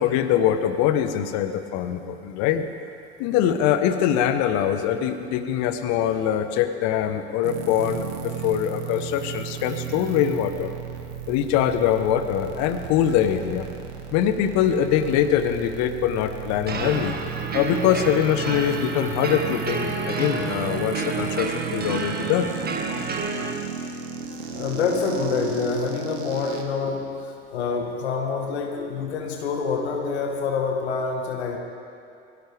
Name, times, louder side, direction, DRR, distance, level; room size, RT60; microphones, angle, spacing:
voice 1, 0.0-2.6 3.2-10.7 11.3-13.7 14.1-17.1 17.5-22.5, left 10 dB, 55° left, 9 dB, 1.2 m, -23 dB
sound 1, 7.4-26.6, right 8 dB, 75° right, 1.6 m, -34 dB
sound 2, 16.7-23.5, right 3 dB, 30° right, 1.8 m, -30 dB
voice 2, 24.3-31.6, left 5 dB, 75° left, 2 dB, 1.6 m, -27 dB
22.0 x 16.0 x 3.5 m, 2.4 s
figure-of-eight pair, 70°, 33 cm